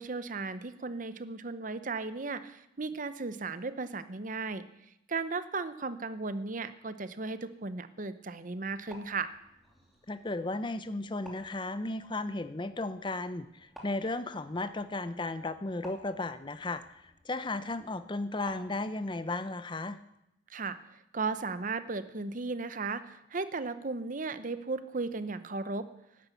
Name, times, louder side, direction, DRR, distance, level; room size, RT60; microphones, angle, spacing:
voice 1, 0.0-4.7 5.1-9.3 20.5-25.9, right 4 dB, 45° right, 12 dB, 0.8 m, -36 dB
sound 1, 8.6-19.2, equal, ahead, 2.8 m, -56 dB
voice 2, 10.1-20.0, left 2 dB, 25° left, 12 dB, 0.6 m, -35 dB
11.5 x 10.0 x 8.2 m, 0.85 s
head